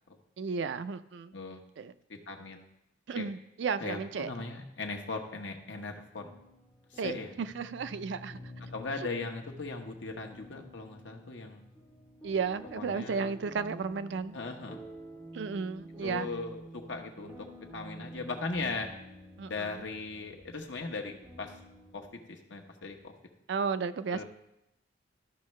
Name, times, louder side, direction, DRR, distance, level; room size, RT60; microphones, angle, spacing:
voice 1, 0.4-1.3 1.8-1.9 3.1-4.3 7.0-8.4 12.2-14.4 15.3-16.3 19.4-19.8 23.5-24.2, right 5 dB, 65° right, 13 dB, 0.4 m, -33 dB
voice 2, 2.1-2.6 3.1-3.3 3.8-6.3 6.9-7.3 8.7-11.6 12.8-13.4 14.3-14.8 16.0-17.5 17.7-18.9 19.5-21.5 21.9-23.1 24.1-24.2, left 3 dB, 75° left, 2 dB, 1.0 m, -38 dB
sound 1, 6.2-22.1, equal, ahead, 2.2 m, -49 dB
13.0 x 5.6 x 3.2 m, 0.85 s
head